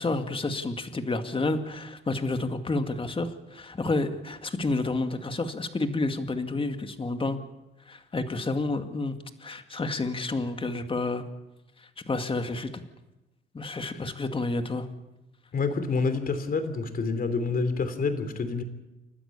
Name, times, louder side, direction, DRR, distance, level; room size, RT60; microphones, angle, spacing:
voice 1, 0.0-7.4 7.9-9.1 9.4-11.2 11.8-12.8 13.5-14.9, left 2 dB, 25° left, 7 dB, 2.2 m, -30 dB
voice 2, 15.5-18.6, left 4 dB, 45° left, 10 dB, 3.0 m, -27 dB
29.5 x 12.5 x 8.5 m, 1.0 s
cardioid pair, 90°, 20 cm